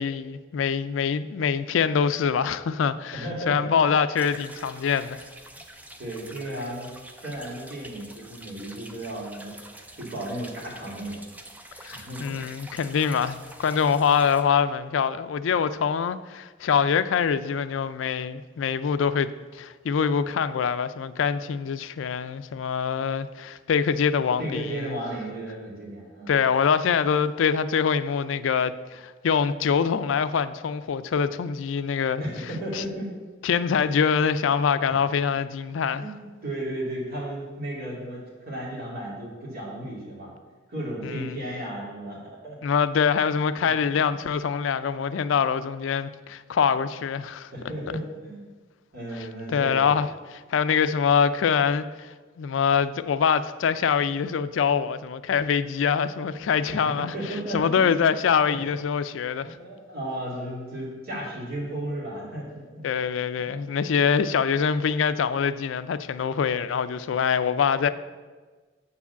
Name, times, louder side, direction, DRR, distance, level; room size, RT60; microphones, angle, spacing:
voice 1, 0.0-5.2 11.8-25.0 26.3-32.2 32.7-32.8 33.4-36.0 41.0-41.4 42.6-47.5 49.5-52.1 52.4-57.1 57.5-59.6 62.8-67.9, left 6 dB, 70° left, 0.4 m, -24 dB
voice 2, 3.1-3.7 6.0-6.9 7.2-9.5 10.0-11.2 11.9-12.4 24.4-26.4 32.2-33.1 36.0-40.3 40.7-42.6 43.9-44.0 47.5-48.5 48.9-50.0 56.7-56.8 57.1-57.9 58.4-58.6 59.4-62.8 63.3-63.5, right 1 dB, 50° right, 2.8 m, -34 dB
sound 1, 4.1-14.4, right 1 dB, 10° right, 0.5 m, -46 dB
6.9 x 4.8 x 7.0 m
head